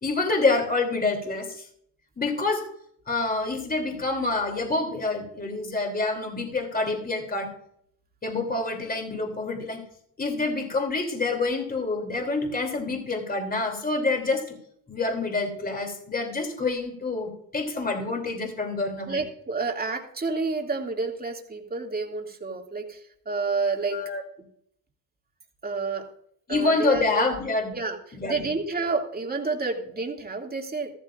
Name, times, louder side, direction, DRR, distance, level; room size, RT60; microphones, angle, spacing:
voice 1, 0.0-1.7 2.2-2.6 3.1-7.5 8.2-9.8 10.2-14.6 14.9-19.2 23.9-24.2 26.5-27.7 28.1-28.5, left 3 dB, 20° left, 3 dB, 3.1 m, -27 dB
voice 2, 19.1-24.0 25.6-26.0 26.5-27.3 27.7-28.0 28.3-30.9, right 4 dB, 20° right, 1 dB, 2.6 m, -29 dB
14.0 x 13.5 x 2.6 m, 0.68 s
cardioid pair, 95°, 42 cm